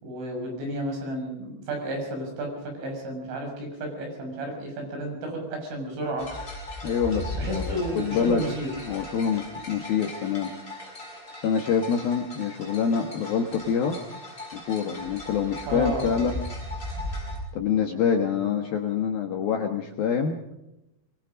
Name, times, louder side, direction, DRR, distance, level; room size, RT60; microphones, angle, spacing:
voice 1, 0.0-2.5 2.8-6.3 7.4-8.7 15.7-16.2, right 1 dB, 70° right, 2 dB, 8.7 m, -32 dB
sound 1, 6.2-17.4, left 1 dB, 10° left, 7.4 m, -37 dB
voice 2, 6.8-8.4 8.8-10.5 11.3-14.0 14.5-16.3 17.5-20.4, left 7 dB, 65° left, 4 dB, 2.5 m, -26 dB
24.0 x 22.0 x 5.2 m, 0.88 s
omnidirectional pair, 5.9 m